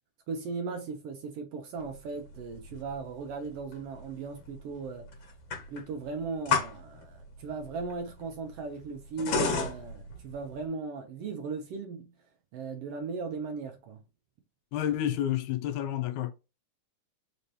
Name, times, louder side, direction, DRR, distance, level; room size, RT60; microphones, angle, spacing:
voice 1, 0.3-5.1 5.7-12.1 12.5-14.0, right 4 dB, 70° right, 1.5 m, -37 dB
sound 1, 1.8-10.7, left 5 dB, 65° left, 2.4 m, -34 dB
voice 2, 14.7-16.3, left 11 dB, 85° left, 2.1 m, -30 dB
5.2 x 2.8 x 3.2 m
omnidirectional pair, 3.3 m